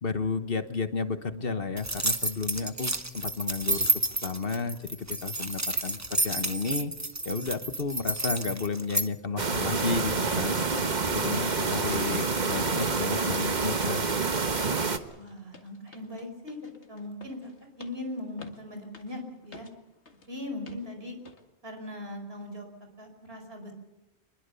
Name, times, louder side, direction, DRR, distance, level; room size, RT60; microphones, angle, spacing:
voice 1, 0.0-3.9 4.2-6.9 7.2-10.6 11.1-14.0, left 4 dB, 60° left, 10 dB, 1.4 m, -32 dB
sound 1, 1.8-9.1, right 2 dB, 15° right, 1.0 m, -30 dB
sound 2, 9.4-15.0, right 4 dB, 45° right, 1.4 m, -27 dB
sound 3, 10.6-10.8 11.1-11.3 11.6-11.8 12.1-14.1 14.4-14.7 15.0-20.3 20.7-20.9 21.2-21.4 21.9-22.0, left 3 dB, 85° left, 2.3 m, -50 dB
voice 2, 15.2-16.6 16.9-19.7 20.3-21.2 21.6-22.7 23.0-23.7, left 1 dB, 65° right, 4 dB, 5.3 m, -40 dB
24.5 x 21.0 x 6.9 m, 1.0 s
omnidirectional pair, 1.1 m